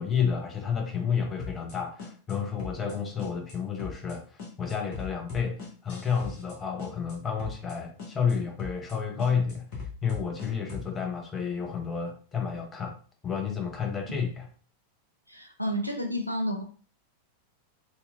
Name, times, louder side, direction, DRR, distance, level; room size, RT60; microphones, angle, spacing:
voice 1, 0.0-12.9 13.2-14.5, left 6 dB, 20° left, 3 dB, 0.5 m, -31 dB
sound 1, 1.4-2.3 2.6-2.9 3.2-3.5 3.8-4.1 4.4-6.5 6.8-7.1 7.4-7.7 8.0-8.3 8.6-8.9 9.2-10.9, left 4 dB, 45° left, 0.9 m, -39 dB
voice 2, 15.3-16.7, equal, 90° left, 3 dB, 0.3 m, -30 dB
2.7 x 2.2 x 2.4 m, 0.40 s
figure-of-eight pair, 90°, 0 cm